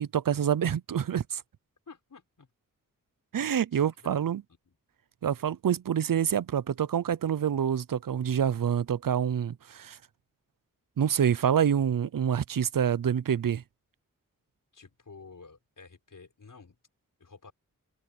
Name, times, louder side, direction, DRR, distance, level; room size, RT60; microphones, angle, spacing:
voice 1, 0.0-1.4 3.3-4.4 5.2-10.0 11.0-13.6, right 8 dB, 75° right, 0.6 m, -27 dB
voice 2, 1.9-2.5 3.4-4.2 4.7-4.8 14.7-16.8 17.2-17.5, left 4 dB, 70° left, 5.1 m, -51 dB
wide cardioid pair, 80°, 33 cm